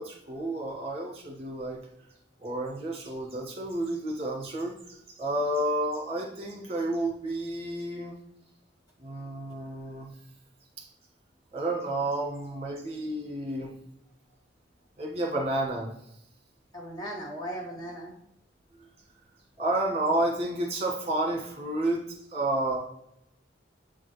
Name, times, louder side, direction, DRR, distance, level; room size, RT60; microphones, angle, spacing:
voice 1, 0.0-1.8 2.4-8.1 9.0-10.1 11.5-13.7 15.0-15.9 19.6-22.8, right 1 dB, 30° right, -1 dB, 1.7 m, -30 dB
voice 2, 16.7-18.1, right 1 dB, 20° left, -3 dB, 0.9 m, -37 dB
7.9 x 3.8 x 3.2 m, 0.78 s
head